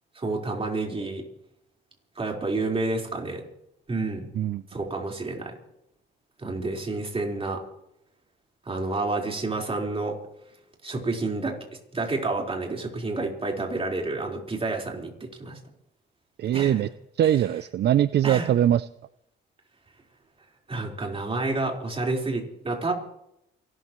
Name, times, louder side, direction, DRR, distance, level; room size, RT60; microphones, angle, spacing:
voice 1, 0.1-1.2 2.2-3.4 3.9-4.3 4.7-5.6 6.4-7.6 8.6-10.2 10.8-11.6 11.9-15.6 16.5-16.8 18.2-18.5 20.7-22.9, right 3 dB, 30° right, 0 dB, 4.4 m, -29 dB
voice 2, 16.4-16.9 17.2-18.9, right 11 dB, 60° right, 16 dB, 0.5 m, -22 dB
29.0 x 13.0 x 3.1 m, 0.78 s
cardioid pair, 90°, 20 cm